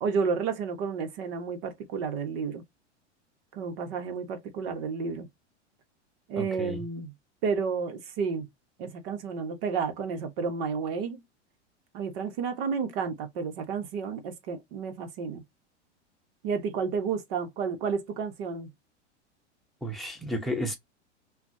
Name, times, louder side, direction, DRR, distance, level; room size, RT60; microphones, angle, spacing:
voice 1, 0.0-2.6 3.5-5.3 6.3-7.1 7.4-8.5 8.8-11.2 11.9-15.4 16.4-18.7, right 5 dB, 50° right, 1.4 m, -31 dB
voice 2, 6.4-6.8 19.8-20.7, equal, ahead, 1.0 m, -32 dB
5.8 x 2.5 x 2.8 m
hypercardioid pair, 100°, 36 cm